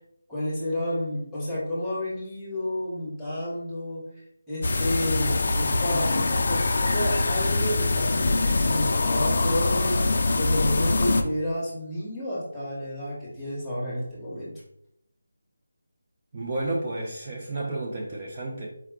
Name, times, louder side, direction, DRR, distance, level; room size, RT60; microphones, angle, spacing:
voice 1, 0.3-4.0 4.5-14.5, left 1 dB, ahead, -8 dB, 1.0 m, -31 dB
sound 1, 4.6-11.2, left 2 dB, 45° left, 0.4 m, -24 dB
voice 2, 16.3-18.7, right 2 dB, 30° right, -1 dB, 0.5 m, -31 dB
4.5 x 2.2 x 3.5 m, 0.76 s
figure-of-eight pair, 170°, 0 cm